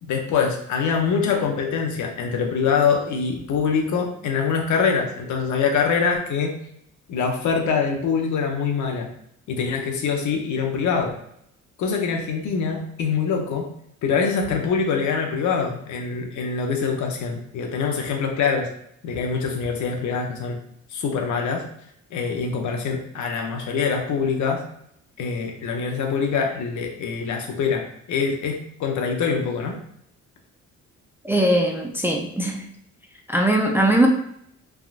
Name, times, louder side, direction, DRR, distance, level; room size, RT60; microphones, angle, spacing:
voice 1, 0.0-6.5 7.1-9.1 9.5-11.2 11.8-13.7 14.0-18.7 19.0-20.6 20.9-21.6 22.1-24.6 25.2-27.8 28.1-29.8, left 5 dB, 70° left, 2 dB, 0.7 m, -24 dB
voice 2, 31.2-32.7 33.3-34.1, right 1 dB, 10° right, 1 dB, 0.3 m, -20 dB
3.5 x 2.3 x 2.4 m, 0.72 s
cardioid pair, 90°, 30 cm